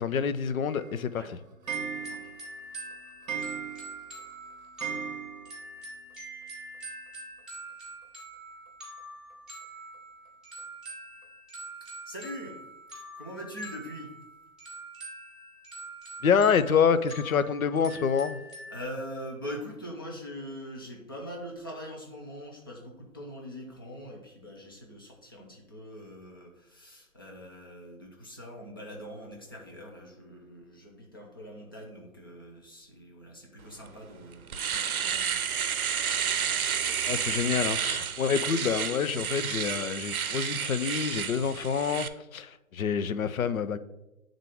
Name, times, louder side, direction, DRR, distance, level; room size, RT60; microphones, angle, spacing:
voice 1, 0.0-1.2 16.2-18.4 37.1-43.8, left 6 dB, 75° left, 0.6 m, -27 dB
Clock, 0.7-5.8 6.1-6.2 6.4-6.5 6.7-6.8 8.0-8.1 8.7-8.8 9.3-9.4 9.9-10.0 10.6-10.7 11.2-11.3, right 7 dB, 30° right, 1.1 m, -38 dB
sound 1, 1.6-18.8, right 2 dB, ahead, 1.4 m, -45 dB
voice 2, 2.0-2.3 11.8-12.6 13.2-14.1 18.7-35.5 35.8-35.9, equal, 15° left, 0.4 m, -42 dB
Domestic sounds home sounds, 33.9-34.0 34.3-42.1, right 7 dB, 80° right, 0.6 m, -31 dB
8.9 x 3.7 x 3.5 m
figure-of-eight pair, 145°, 42 cm